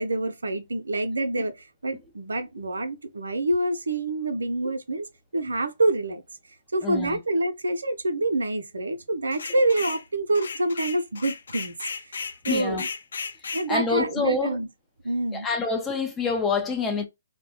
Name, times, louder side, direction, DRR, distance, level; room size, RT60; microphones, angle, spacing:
voice 1, 0.0-1.5 1.8-5.1 5.3-6.2 6.7-11.7 12.4-12.8 13.5-14.7 15.0-15.5, right 2 dB, 80° right, 0.5 m, -26 dB
voice 2, 6.8-7.2 12.5-12.9 13.7-14.6 15.3-17.0, left 4 dB, 15° left, 0.5 m, -27 dB
sound 1, 9.3-10.0 10.3-13.7, left 5 dB, 70° left, 0.3 m, -35 dB
2.2 x 2.1 x 2.7 m
figure-of-eight pair, 130°, 0 cm